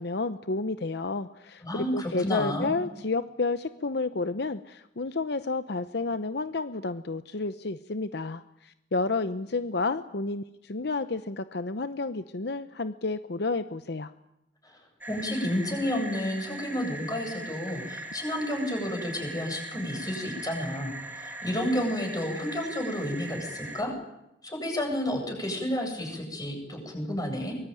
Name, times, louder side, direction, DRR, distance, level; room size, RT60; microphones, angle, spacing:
voice 1, 0.0-14.1, left 3 dB, 70° left, 11 dB, 0.9 m, -31 dB
voice 2, 1.6-2.7 14.6-14.8 15.1-23.9 24.4-27.5, left 1 dB, 20° left, 2 dB, 8.0 m, -31 dB
sound 1, 15.0-23.8, right 1 dB, 10° right, 2.8 m, -40 dB
24.0 x 21.5 x 9.2 m, 0.87 s
head